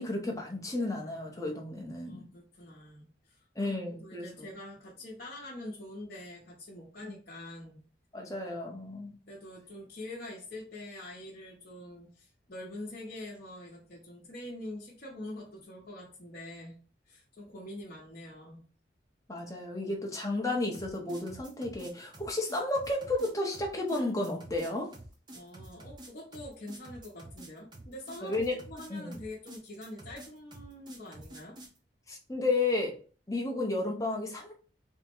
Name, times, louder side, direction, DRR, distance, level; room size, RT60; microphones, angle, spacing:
voice 1, 0.0-2.3 3.6-4.5 7.0-7.1 8.1-9.1 19.3-24.9 28.2-28.6 28.9-29.1 32.1-33.0 33.3-34.5, left 2 dB, 15° left, 0.7 m, -32 dB
voice 2, 2.0-7.8 9.3-16.8 17.1-18.6 25.3-28.4 28.7-31.6, left 1 dB, 50° left, 0.9 m, -45 dB
sound 1, 20.7-31.8, right 1 dB, 25° right, 0.7 m, -49 dB
3.5 x 2.1 x 4.3 m
head